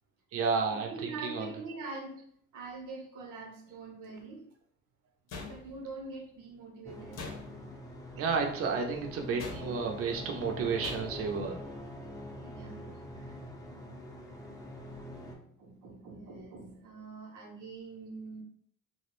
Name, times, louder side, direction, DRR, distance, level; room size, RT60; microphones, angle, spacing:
voice 1, 0.3-1.5 8.2-11.6, right 5 dB, 50° right, 3 dB, 0.5 m, -32 dB
voice 2, 0.9-2.2 2.5-4.4 5.5-7.2 12.4-13.5 15.4-18.4, right 3 dB, 90° right, 2 dB, 0.7 m, -44 dB
sound 1, 5.3-6.0 7.1-7.8 9.4-10.0 10.8-11.4, left 4 dB, 60° left, 0.7 m, -44 dB
sound 2, 6.9-15.4, equal, 10° left, 0.5 m, -44 dB
2.3 x 2.0 x 3.0 m, 0.63 s
cardioid pair, 90°, 30 cm